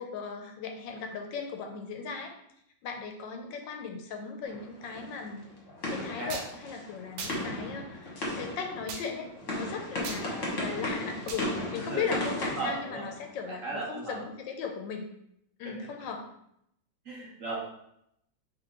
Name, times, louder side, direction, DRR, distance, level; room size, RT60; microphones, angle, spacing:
voice 1, 0.0-2.3 2.8-5.5 5.9-15.1 15.6-16.3, left 5 dB, 90° left, 3 dB, 1.3 m, -37 dB
sound 1, 4.5-13.5, left 1 dB, 45° left, 1.3 m, -36 dB
voice 2, 6.0-6.3 11.8-12.1 12.6-13.0 13.6-14.2 17.1-17.6, right 3 dB, 55° right, -3 dB, 1.1 m, -36 dB
sound 2, 6.3-6.5 7.2-7.4 8.9-9.0 10.0-10.2 11.3-11.5, right 5 dB, 75° right, 1.3 m, -37 dB
3.7 x 3.1 x 3.6 m, 0.75 s
omnidirectional pair, 2.0 m